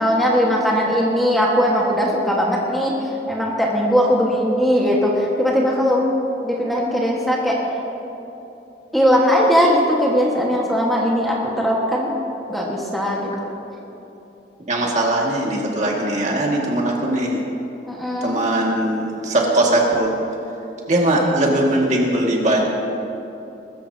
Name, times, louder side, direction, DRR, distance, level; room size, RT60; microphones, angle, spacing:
voice 1, 0.0-6.1 6.4-7.6 8.9-12.1 12.5-13.3 17.8-18.4, equal, ahead, -4 dB, 1.5 m, -19 dB
voice 2, 14.7-17.4 18.2-20.1 20.9-22.6, right 1 dB, 40° right, -2 dB, 2.0 m, -20 dB
21.0 x 14.0 x 2.8 m, 2.9 s
head